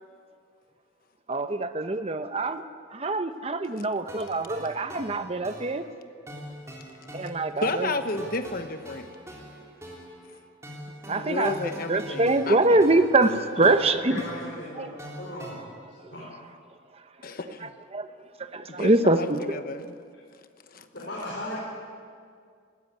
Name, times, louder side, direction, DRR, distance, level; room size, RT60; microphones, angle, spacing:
voice 1, 1.3-2.6 2.9-5.8 7.1-8.2 11.1-14.2 14.8-14.9 16.0-16.1 17.6-18.1 18.4-19.4, right 2 dB, 30° right, 9 dB, 0.9 m, -24 dB
sound 1, 4.1-15.5, right 1 dB, 15° right, 3.6 m, -44 dB
voice 2, 7.6-9.1 11.1-13.0 17.2-17.7 18.7-20.0 20.7-20.9, left 2 dB, 50° left, 9 dB, 1.1 m, -32 dB
voice 3, 13.5-14.9 15.2-15.6 16.1-16.3 20.9-21.6, left 1 dB, 65° left, -6 dB, 5.2 m, -36 dB
19.0 x 15.5 x 9.4 m, 2.1 s
head